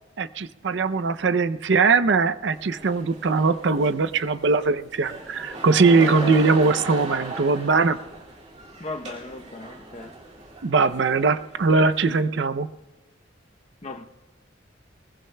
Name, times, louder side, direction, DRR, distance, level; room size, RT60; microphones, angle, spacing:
voice 1, 0.2-8.0 10.6-12.7, right 4 dB, 65° right, 12 dB, 0.5 m, -21 dB
sound 1, 2.5-12.2, right 2 dB, 40° right, 2.3 m, -38 dB
voice 2, 6.0-6.5 8.8-10.2 13.8-14.0, left 2 dB, 35° left, 6 dB, 0.7 m, -35 dB
23.5 x 21.0 x 2.2 m, 1.2 s
head